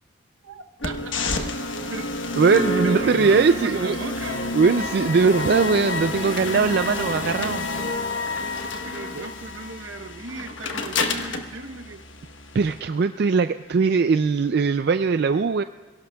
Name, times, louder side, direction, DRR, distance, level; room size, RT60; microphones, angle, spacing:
voice 1, 0.4-1.1 1.9-2.0 2.8-4.6 5.4-5.5 6.2-6.4 8.8-12.0, right 3 dB, 80° right, 5 dB, 0.9 m, -36 dB
sound 1, 0.8-12.8, left 2 dB, 75° left, 1.2 m, -29 dB
voice 2, 2.4-4.0 4.5-7.6 9.2-9.3 12.5-15.6, right 5 dB, 55° right, 9 dB, 0.3 m, -20 dB
28.0 x 17.0 x 2.3 m, 1.5 s
head